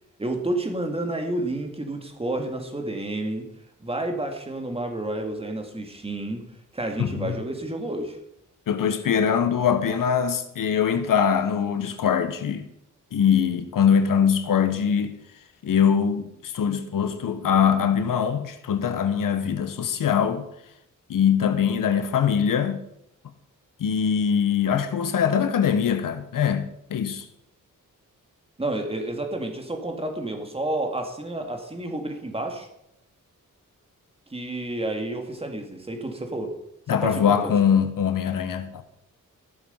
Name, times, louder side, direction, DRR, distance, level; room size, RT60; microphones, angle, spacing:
voice 1, 0.2-3.5 3.8-6.4 6.7-8.2 28.6-32.7 34.3-36.5 37.0-37.5, right 1 dB, 15° right, 2.1 m, -30 dB
voice 2, 7.0-7.4 8.7-12.7 13.1-15.1 15.6-20.5 21.1-22.8 23.8-27.3 36.9-38.8, left 7 dB, 80° left, 1.1 m, -22 dB
14.5 x 7.1 x 5.6 m
cardioid pair, 95°, 32 cm